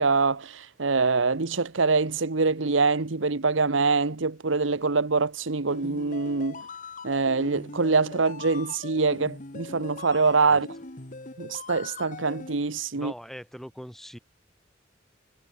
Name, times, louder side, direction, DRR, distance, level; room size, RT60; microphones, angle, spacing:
voice 1, 0.0-6.6 7.0-10.7 11.4-13.1, right 4 dB, 85° right, 1.1 m, -24 dB
sound 1, 5.7-12.5, left 3 dB, 45° left, 2.2 m, -41 dB
voice 2, 12.9-14.2, equal, ahead, 3.5 m, -41 dB
head